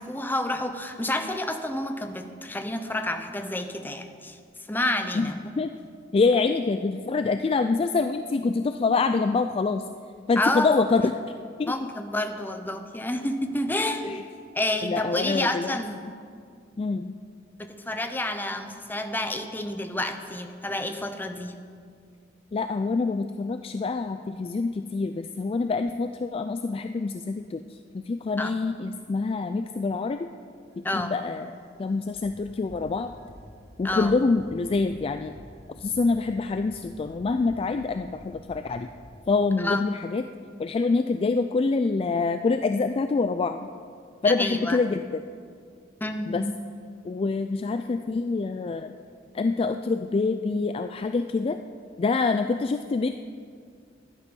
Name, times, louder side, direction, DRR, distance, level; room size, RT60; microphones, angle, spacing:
voice 1, 0.0-4.4 4.7-5.5 10.4-10.7 11.7-14.0 14.5-16.0 17.6-21.5 28.4-28.5 30.8-31.2 33.8-34.1 39.6-39.8 44.2-44.8 46.0-46.5, left 1 dB, 10° left, 7 dB, 0.7 m, -29 dB
voice 2, 5.1-5.8 6.1-9.8 10.3-11.2 11.6-11.7 14.0-14.2 14.8-15.8 16.0-16.1 16.8-17.2 22.5-30.3 30.8-31.5 31.8-33.1 33.8-35.3 35.8-38.9 39.3-40.2 40.6-43.7 44.2-45.2 46.3-46.5 47.0-48.9 49.3-51.6 52.0-53.1, left 4 dB, 30° left, 8 dB, 0.3 m, -26 dB
sound 1, 30.7-39.2, equal, 20° right, 1.8 m, -50 dB
11.5 x 11.0 x 5.3 m, 2.2 s
head